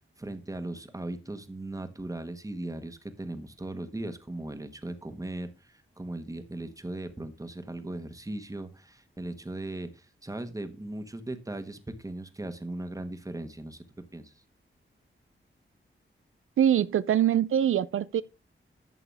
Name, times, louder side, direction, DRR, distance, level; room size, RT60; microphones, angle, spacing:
voice 1, 0.2-13.8 14.1-14.3, right 2 dB, 15° right, 1.4 m, -38 dB
voice 2, 16.6-18.2, right 10 dB, 85° right, 0.4 m, -23 dB
11.5 x 8.0 x 3.4 m
wide cardioid pair, 110°, 21 cm